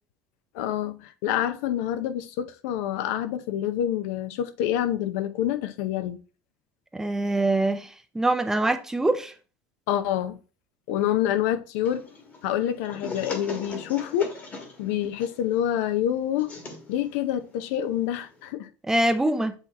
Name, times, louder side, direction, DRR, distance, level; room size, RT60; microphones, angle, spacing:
voice 1, 0.5-6.2 9.9-10.4 10.9-12.1 12.4-14.3 14.8-16.5 16.9-18.7, left 11 dB, 80° left, 0.6 m, -27 dB
voice 2, 6.9-9.3 18.9-19.5, right 2 dB, 5° right, 0.4 m, -24 dB
sound 1, 11.8-18.5, left 3 dB, 25° left, 1.3 m, -41 dB
8.1 x 2.9 x 4.0 m
cardioid pair, 165°, 7 cm